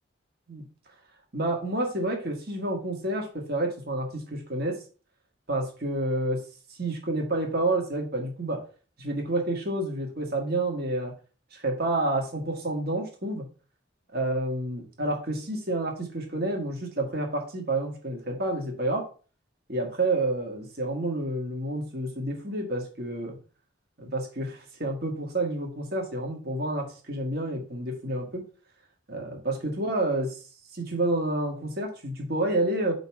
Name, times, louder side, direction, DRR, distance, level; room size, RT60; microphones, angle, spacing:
voice 1, 1.3-4.8 5.5-6.4 6.8-8.6 9.0-11.1 11.5-13.4 14.1-19.0 19.7-23.4 24.0-28.4 29.1-30.4 30.7-32.9, right 2 dB, 50° right, 2 dB, 1.7 m, -29 dB
4.9 x 4.0 x 5.8 m, 0.38 s
head